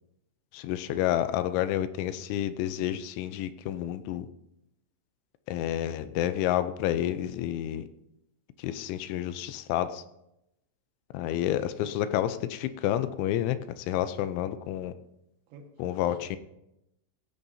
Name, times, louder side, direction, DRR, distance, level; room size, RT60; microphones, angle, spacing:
voice 1, 0.5-4.2 5.5-7.8 8.6-10.0 11.1-14.9 15.8-16.4, left 12 dB, 80° left, 11 dB, 2.9 m, -29 dB
voice 2, 15.5-16.4, right 3 dB, 70° right, 3 dB, 3.6 m, -51 dB
17.5 x 15.0 x 2.8 m, 0.86 s
omnidirectional pair, 5.7 m